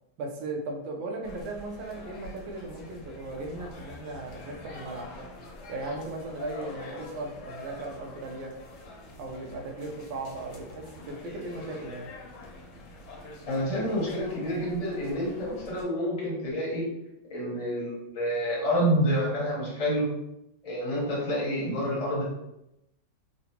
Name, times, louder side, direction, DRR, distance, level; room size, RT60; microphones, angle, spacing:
voice 1, 0.2-5.3 5.7-8.5 9.2-12.1, right 2 dB, 85° right, 1 dB, 1.4 m, -37 dB
sound 1, 1.2-15.8, left 2 dB, 70° left, 1.2 m, -45 dB
voice 2, 13.4-16.9 17.3-20.1 20.6-22.2, equal, 30° left, -5 dB, 0.7 m, -28 dB
3.8 x 2.2 x 2.8 m, 0.87 s
omnidirectional pair, 2.0 m